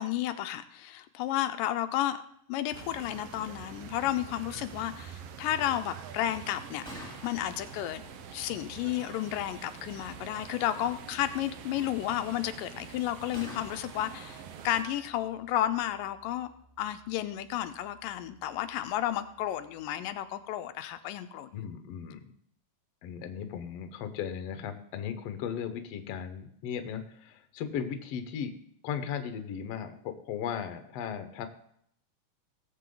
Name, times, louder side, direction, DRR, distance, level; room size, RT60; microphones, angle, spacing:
voice 1, 0.0-2.2 2.5-21.7, left 12 dB, 85° left, 9 dB, 2.3 m, -32 dB
sound 1, 2.7-14.8, right 8 dB, 85° right, 1.3 m, -46 dB
Gunshot gunfire, 6.7-20.4, equal, ahead, 2.2 m, -53 dB
voice 2, 21.5-22.2 23.0-28.6 28.8-31.5, left 8 dB, 65° left, 8 dB, 1.8 m, -36 dB
19.0 x 7.6 x 3.9 m, 0.69 s
omnidirectional pair, 3.8 m